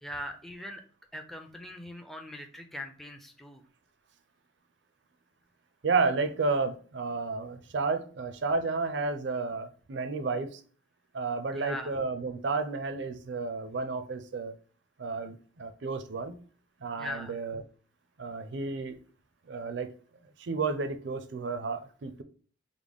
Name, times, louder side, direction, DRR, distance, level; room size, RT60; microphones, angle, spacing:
voice 1, 0.0-0.8 1.1-3.6 11.5-11.9 17.0-17.4, left 1 dB, ahead, 3 dB, 0.4 m, -41 dB
voice 2, 5.8-10.6 11.1-14.5 15.0-16.4 16.8-17.6 18.2-19.0 19.5-19.9 20.4-22.2, right 4 dB, 65° right, 10 dB, 0.4 m, -31 dB
4.8 x 2.1 x 3.5 m, 0.42 s
head